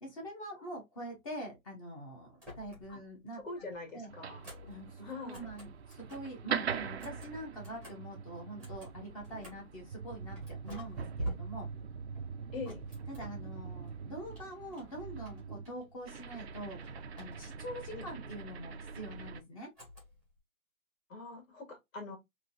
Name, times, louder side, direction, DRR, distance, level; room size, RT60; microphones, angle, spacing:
voice 1, 0.0-3.7 3.9-4.1 4.7-10.4 10.6-11.7 13.1-19.7, right 1 dB, 25° left, 1.3 m, -45 dB
sound 1, 2.3-3.1 3.4-6.4 6.8-9.8 10.3-13.9 14.3-16.1 16.3-17.8 19.7-20.4, right 1 dB, 5° left, 1.1 m, -48 dB
voice 2, 3.4-4.4 5.0-5.5 12.5-12.8 17.9-18.1 21.1-22.2, left 3 dB, 65° left, 2.5 m, -43 dB
sound 2, 4.1-19.4, right 6 dB, 50° right, 0.5 m, -43 dB
3.7 x 2.9 x 2.8 m
hypercardioid pair, 160°, 42 cm